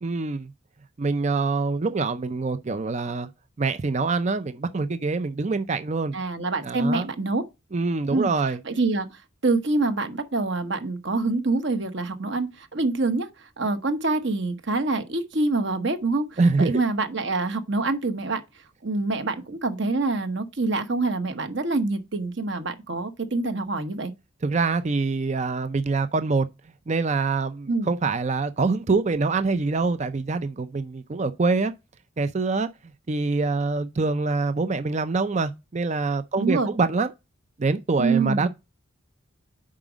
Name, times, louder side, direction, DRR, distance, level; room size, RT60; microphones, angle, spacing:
voice 1, 0.0-0.5 1.0-3.3 3.6-6.2 6.6-7.0 7.7-8.6 16.4-16.7 24.4-26.5 26.9-31.7 32.2-32.7 33.1-37.1 37.6-38.5, right 3 dB, 35° right, 0.4 m, -25 dB
voice 2, 6.1-7.4 8.1-8.3 8.6-13.3 13.6-18.4 18.8-24.1 27.7-27.9 36.4-36.7 38.0-38.5, right 3 dB, 60° right, 1.0 m, -26 dB
7.5 x 5.0 x 4.9 m
head